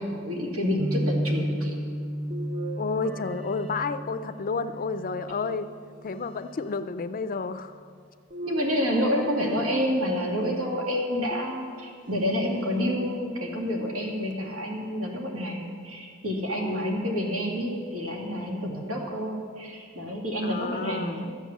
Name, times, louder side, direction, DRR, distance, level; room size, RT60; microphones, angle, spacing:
voice 1, 0.0-1.8 8.4-21.3, equal, 80° right, -1 dB, 2.5 m, -28 dB
sound 1, 0.8-6.9, equal, ahead, 0.8 m, -33 dB
sound 2, 2.3-4.6 5.3-6.3 8.3-10.4 11.3-12.2 12.8-12.9 14.3-14.4, right 2 dB, 40° right, 0.7 m, -40 dB
voice 2, 2.8-5.7 6.0-7.8 16.6-17.0 20.4-21.3, left 4 dB, 40° left, 12 dB, 0.4 m, -31 dB
12.5 x 8.3 x 7.2 m, 2.1 s
head